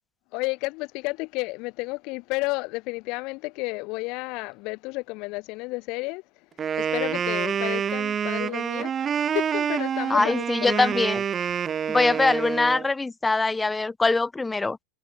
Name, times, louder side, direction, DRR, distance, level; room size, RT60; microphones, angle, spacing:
voice 1, 0.3-6.2 6.8-10.9 11.7-11.9, left 26 dB, 40° left, 1.4 m, -32 dB
Wind instrument woodwind instrument, 6.6-12.9, right 8 dB, 20° right, 0.7 m, -27 dB
voice 2, 10.1-11.2 11.9-14.8, left 3 dB, 10° left, 1.4 m, -23 dB
supercardioid pair, 160°, 0 cm